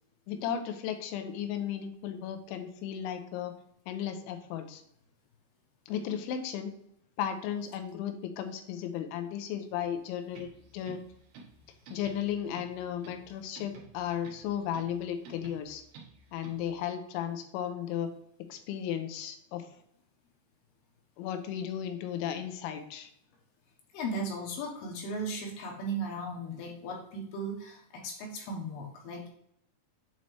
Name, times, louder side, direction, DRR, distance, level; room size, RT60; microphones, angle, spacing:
voice 1, 0.3-3.5 3.9-4.8 5.9-6.7 7.2-11.0 11.9-15.8 16.3-18.1 18.5-19.7 21.2-23.1, left 9 dB, 90° left, 7 dB, 3.1 m, -35 dB
sound 1, 10.3-16.8, right 4 dB, 70° right, 2.7 m, -53 dB
voice 2, 23.9-29.3, right 1 dB, 75° left, 0 dB, 2.6 m, -36 dB
7.9 x 4.2 x 3.1 m, 0.74 s
omnidirectional pair, 5.2 m